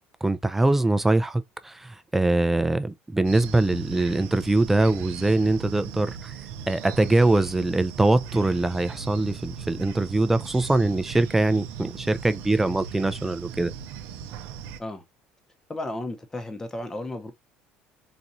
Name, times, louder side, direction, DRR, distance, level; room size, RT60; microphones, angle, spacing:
voice 1, 0.2-6.3 6.7-13.7, right 2 dB, 10° right, 0.3 m, -23 dB
sound 1, 3.2-14.8, right 8 dB, 75° right, 0.5 m, -38 dB
voice 2, 15.7-17.3, left 1 dB, 15° left, 0.7 m, -33 dB
4.1 x 2.4 x 2.6 m
cardioid pair, 130°, 3 cm